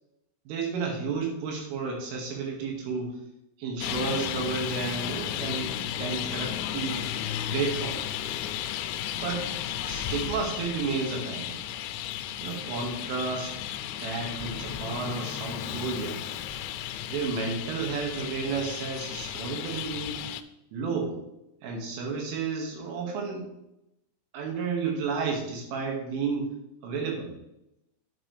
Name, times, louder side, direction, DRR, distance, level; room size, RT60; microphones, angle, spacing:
voice 1, 0.5-3.2 3.6-7.0 7.5-8.2 9.2-9.5 9.8-11.6 12.4-13.5 14.0-16.2 17.1-20.2 20.7-21.2 21.6-23.5 24.3-26.5 26.8-27.3, right 4 dB, 85° right, 0 dB, 4.5 m, -32 dB
Traffic noise roadway noise, 3.8-20.4, left 11 dB, 85° left, 2.4 m, -34 dB
10.0 x 8.7 x 3.3 m, 0.86 s
omnidirectional pair, 5.5 m